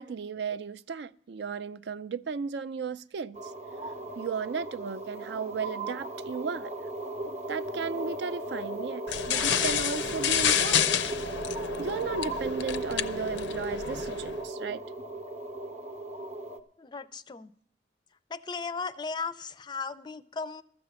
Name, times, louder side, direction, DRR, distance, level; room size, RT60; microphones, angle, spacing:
voice 1, 0.0-3.4 4.2-6.7 7.5-11.0 11.8-14.8, right 5 dB, 70° right, 0.4 m, -35 dB
sound 1, 3.3-16.6, right 1 dB, 40° right, 0.7 m, -36 dB
sound 2, 9.1-14.4, left 9 dB, 80° left, 0.5 m, -29 dB
voice 2, 16.8-17.5 18.3-20.6, left 4 dB, 25° left, 0.4 m, -36 dB
12.5 x 7.7 x 6.9 m
head